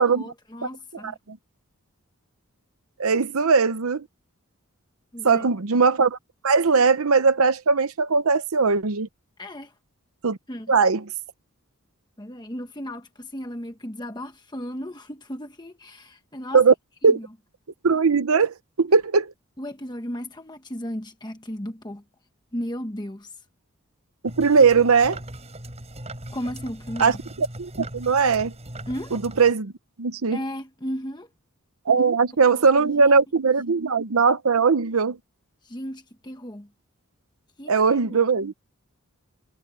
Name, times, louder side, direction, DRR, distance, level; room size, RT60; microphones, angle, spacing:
voice 1, 0.0-1.2 5.1-5.5 9.4-9.7 10.5-10.7 12.2-16.6 17.0-17.3 19.6-22.0 22.5-23.4 26.3-27.2 28.9-29.1 30.3-31.3 32.0-32.1 32.5-33.2 35.6-36.7 37.6-38.2, equal, 20° left, 1.2 m, -35 dB
voice 2, 1.0-1.4 3.0-4.0 5.2-6.2 6.4-9.1 10.2-10.4 10.7-11.0 16.5-16.7 17.0-17.2 17.8-19.3 24.4-25.2 27.0-28.5 29.1-29.7 30.0-30.4 31.9-35.2 37.7-38.5, right 5 dB, 75° right, 0.8 m, -20 dB
sound 1, 24.3-29.5, right 1 dB, 30° right, 6.5 m, -39 dB
head